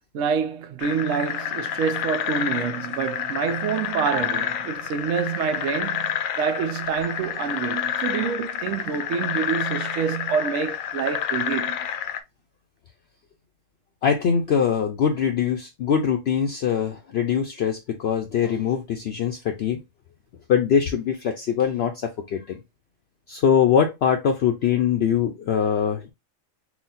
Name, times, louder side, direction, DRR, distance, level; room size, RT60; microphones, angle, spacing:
voice 1, 0.1-11.8, right 7 dB, 70° right, 0.9 m, -27 dB
sound 1, 0.8-12.2, left 9 dB, 80° left, 1.0 m, -29 dB
voice 2, 14.0-19.8 20.5-22.6 23.3-26.1, left 7 dB, 60° left, 0.7 m, -22 dB
4.0 x 2.2 x 4.0 m
omnidirectional pair, 1.4 m